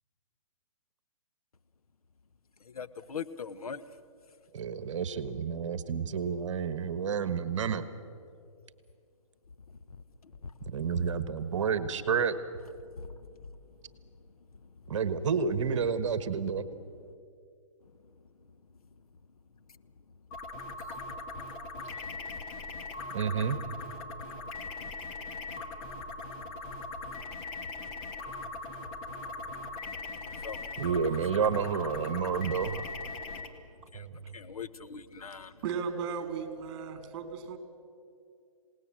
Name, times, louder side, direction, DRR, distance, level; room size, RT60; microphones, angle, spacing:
voice 1, 2.7-3.8 10.4-10.7 13.0-13.1 30.4-30.6 30.9-31.0 33.9-34.1 34.3-35.6, left 6 dB, 90° left, 13 dB, 1.2 m, -41 dB
voice 2, 4.5-7.8 10.7-12.4 14.9-16.7 20.8-21.0 23.1-23.6 30.8-33.1 33.9-34.1, right 6 dB, 60° right, 12 dB, 1.4 m, -30 dB
sound 1, 20.3-33.5, left 3 dB, 25° left, 2.2 m, -40 dB
voice 3, 35.6-37.6, right 6 dB, 40° right, 7 dB, 3.4 m, -35 dB
27.5 x 18.5 x 7.6 m, 2.5 s
hypercardioid pair, 145°, 18 cm